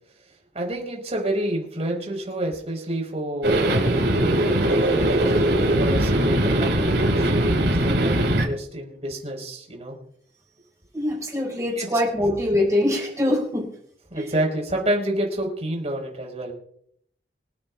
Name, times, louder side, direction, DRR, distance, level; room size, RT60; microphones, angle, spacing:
voice 1, 0.5-5.0 5.7-10.0 11.8-11.9 14.1-16.5, right 1 dB, 40° right, 0 dB, 5.1 m, -29 dB
sound 1, 3.4-8.5, right 1 dB, 85° right, 5.0 m, -20 dB
voice 2, 10.9-13.7 14.1-14.3, left 1 dB, 20° right, -3 dB, 4.9 m, -24 dB
26.5 x 9.7 x 2.5 m, 0.68 s
head